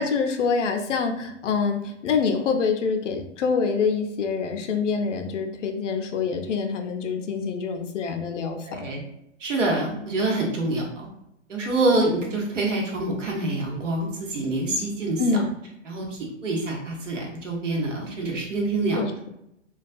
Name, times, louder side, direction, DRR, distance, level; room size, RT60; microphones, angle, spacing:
voice 1, 0.0-8.9 15.2-15.5 19.0-19.3, left 5 dB, 75° left, 5 dB, 0.6 m, -26 dB
voice 2, 8.6-9.0 9.4-11.1 11.5-15.2 15.9-19.0, right 2 dB, 80° right, -1 dB, 1.0 m, -26 dB
2.3 x 2.2 x 2.5 m, 0.81 s
hypercardioid pair, 140°, 37 cm